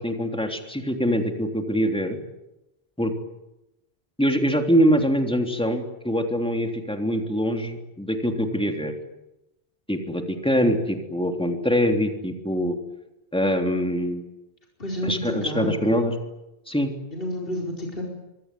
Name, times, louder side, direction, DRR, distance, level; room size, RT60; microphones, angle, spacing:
voice 1, 0.0-2.2 3.0-3.1 4.2-8.9 9.9-12.7 13.3-14.2 15.0-16.1 16.7-16.9, equal, 5° left, 4 dB, 3.4 m, -24 dB
voice 2, 14.8-16.1 17.1-18.0, left 1 dB, 60° left, -1 dB, 5.1 m, -30 dB
25.5 x 23.5 x 9.4 m, 0.94 s
omnidirectional pair, 1.1 m